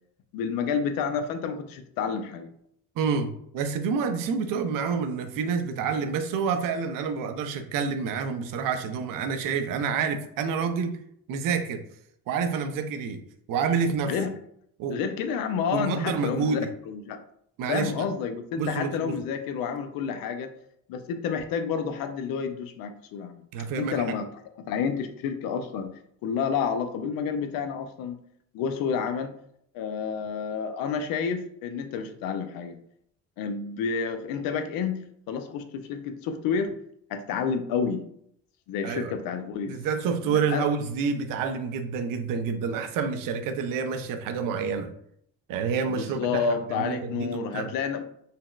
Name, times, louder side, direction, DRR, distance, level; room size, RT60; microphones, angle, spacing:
voice 1, 0.3-2.5 14.0-14.3 14.9-17.2 17.7-20.5 20.9-23.4 23.8-24.3 24.6-28.2 28.5-29.3 29.7-32.8 33.4-36.8 37.1-38.0 38.7-39.8 40.2-40.7 45.9-48.0, left 6 dB, 75° left, 8 dB, 0.5 m, -30 dB
voice 2, 3.0-11.0 11.3-11.8 12.3-13.2 13.5-14.1 14.8-15.0 15.7-16.7 17.6-17.9 18.6-19.2 23.5-24.2 38.8-39.1 39.7-44.9 45.5-46.4 46.7-47.7, right 5 dB, 70° right, 8 dB, 0.5 m, -28 dB
4.0 x 2.0 x 2.2 m, 0.70 s
supercardioid pair, 70°, 34 cm